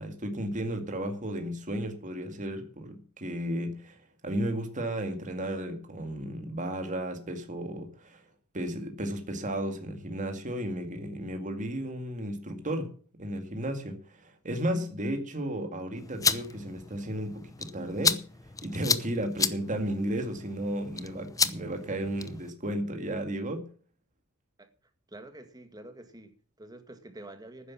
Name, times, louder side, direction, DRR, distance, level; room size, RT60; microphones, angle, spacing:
voice 1, 0.0-8.2 8.5-12.9 13.2-18.2 18.6-23.7, right 1 dB, 35° right, 2.1 m, -34 dB
sound 1, 16.0-22.5, left 5 dB, 15° left, 0.8 m, -32 dB
voice 2, 25.1-27.7, right 1 dB, 20° right, 1.9 m, -47 dB
12.5 x 10.0 x 7.1 m
head